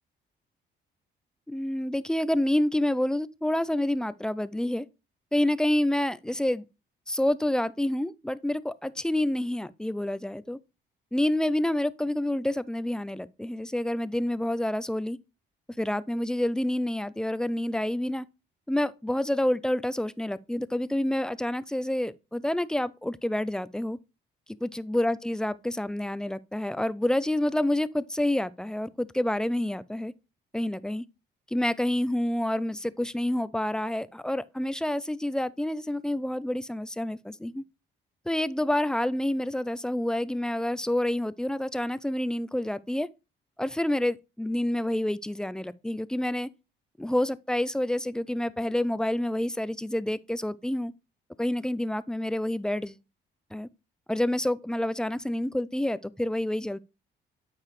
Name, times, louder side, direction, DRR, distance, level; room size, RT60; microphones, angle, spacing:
voice 1, 1.5-4.9 5.3-6.6 7.1-10.6 11.1-15.2 15.8-18.3 18.7-24.0 24.6-30.1 30.5-31.0 31.5-37.6 38.3-43.1 43.6-46.5 47.0-50.9 51.4-53.0 53.5-53.7 54.1-56.8, left 1 dB, 5° left, 0.4 m, -28 dB
8.6 x 4.8 x 3.1 m
cardioid pair, 90°, 20 cm